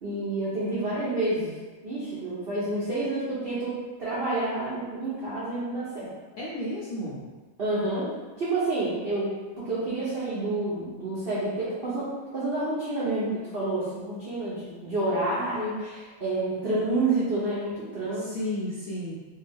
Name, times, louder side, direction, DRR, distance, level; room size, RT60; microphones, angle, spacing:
voice 1, 0.0-1.5 1.8-6.1 7.6-8.1 8.4-9.3 9.6-18.3, right 2 dB, 80° right, -9 dB, 0.5 m, -29 dB
voice 2, 6.4-7.3 18.1-19.2, left 1 dB, 75° left, -7 dB, 0.7 m, -33 dB
3.3 x 2.3 x 3.4 m, 1.3 s
omnidirectional pair, 2.2 m